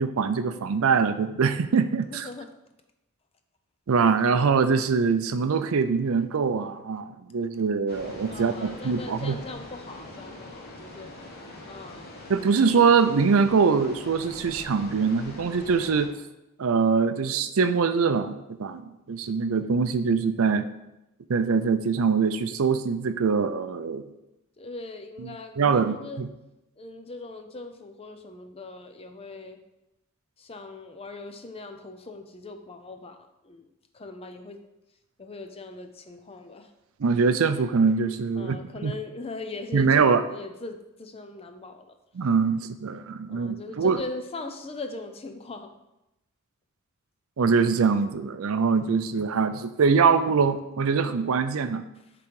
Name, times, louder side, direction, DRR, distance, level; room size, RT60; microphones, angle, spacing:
voice 1, 0.0-2.3 3.9-9.4 12.3-16.1 16.6-20.7 21.3-24.0 25.2-25.3 25.6-26.3 37.0-38.6 38.8-38.9 39.7-40.2 42.2-44.0 47.4-51.8, right 5 dB, 65° right, 11 dB, 0.5 m, -23 dB
voice 2, 2.1-2.5 8.3-12.1 24.6-26.2 26.8-29.6 30.4-33.2 33.4-34.6 35.2-36.7 38.4-41.9 43.3-45.7 52.0-52.1, left 3 dB, 25° left, 6 dB, 0.6 m, -40 dB
sound 1, 7.9-16.1, left 1 dB, 45° left, 1.2 m, -43 dB
7.0 x 3.8 x 4.7 m, 0.92 s
head